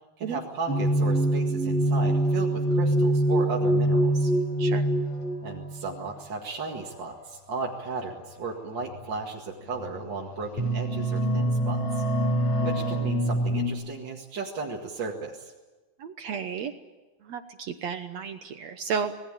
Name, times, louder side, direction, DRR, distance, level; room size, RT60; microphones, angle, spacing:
voice 1, 0.2-4.3 5.4-12.0 12.6-15.5, right 4 dB, 40° right, -1 dB, 2.0 m, -35 dB
sound 1, 0.7-5.8 6.7-7.0 8.1-8.2 8.9-9.0 9.7-10.1 10.4-13.7, right 1 dB, 40° left, 6.6 m, -25 dB
voice 2, 16.0-16.7 17.2-19.1, right 6 dB, 70° right, 8 dB, 1.6 m, -33 dB
26.5 x 20.0 x 9.0 m, 1.2 s
omnidirectional pair, 4.4 m